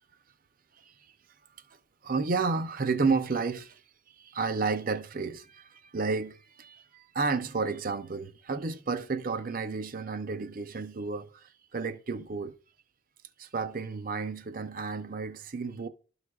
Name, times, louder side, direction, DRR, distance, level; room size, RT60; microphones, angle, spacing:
voice 1, 2.0-3.8 4.1-12.5 13.4-15.9, right 4 dB, 45° right, 0.5 m, -32 dB
12.5 x 4.8 x 2.3 m
head